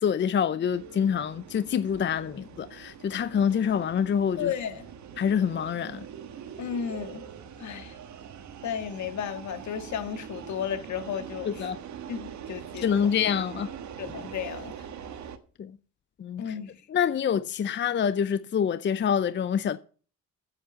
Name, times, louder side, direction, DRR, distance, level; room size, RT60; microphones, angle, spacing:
voice 1, 0.0-4.5 5.2-6.0 11.5-11.8 12.8-13.7 15.6-15.7 16.2-16.5 16.9-19.8, left 8 dB, 40° left, 0.5 m, -26 dB
sound 1, 0.7-15.4, right 8 dB, 70° right, 1.4 m, -43 dB
voice 2, 4.4-4.9 6.6-7.2 7.6-8.0 8.6-11.7 12.1-13.1 14.0-14.9 16.4-16.7, left 8 dB, 70° left, 1.7 m, -34 dB
8.7 x 7.9 x 7.0 m
cardioid pair, 90°, 30 cm